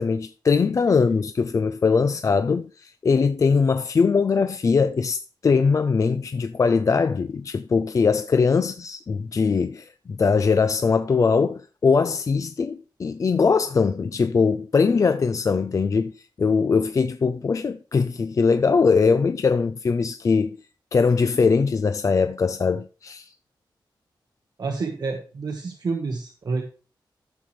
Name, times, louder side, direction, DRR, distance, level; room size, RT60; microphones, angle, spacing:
voice 1, 0.0-20.6 20.9-23.3, left 5 dB, 40° left, 0.4 m, -21 dB
voice 2, 24.6-26.6, right 4 dB, 55° right, 1.2 m, -28 dB
14.0 x 7.2 x 3.1 m
wide cardioid pair, 145°, 8 cm